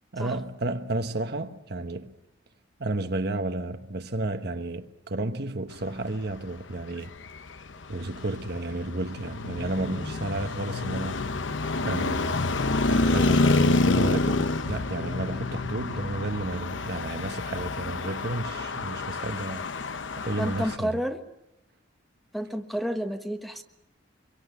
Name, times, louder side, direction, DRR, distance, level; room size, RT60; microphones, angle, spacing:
voice 1, 0.1-2.1 2.8-7.1 7.9-11.2 11.8-12.5 12.9-19.7 20.2-21.0, right 2 dB, 55° right, 1.2 m, -32 dB
Traffic noise roadway noise, 7.0-20.8, left 3 dB, 75° left, 0.9 m, -28 dB
voice 2, 20.4-21.2 22.3-23.6, equal, ahead, 1.2 m, -30 dB
24.5 x 23.5 x 8.1 m
head